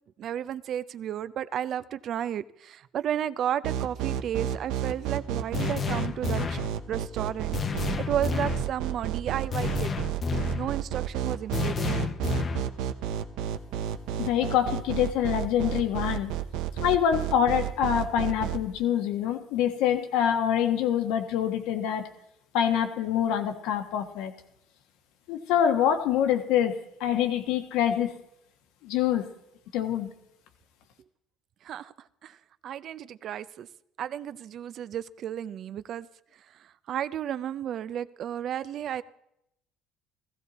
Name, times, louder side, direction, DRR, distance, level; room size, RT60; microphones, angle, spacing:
voice 1, 0.2-6.6 6.9-9.9 10.5-11.9 31.6-33.7 34.0-36.1 36.3-39.0, right 10 dB, 50° right, 0.5 m, -33 dB
sound 1, 3.6-18.6, right 11 dB, 85° right, 0.8 m, -31 dB
sound 2, 5.5-6.7 7.5-8.7 9.5-10.7 11.5-12.7, left 5 dB, 35° left, 0.8 m, -30 dB
voice 2, 14.2-16.3 16.8-22.1 22.5-24.3 25.3-28.1 28.8-29.3 29.7-30.1, left 9 dB, 80° left, 1.3 m, -25 dB
15.5 x 15.0 x 4.1 m
cardioid pair, 115°, 0 cm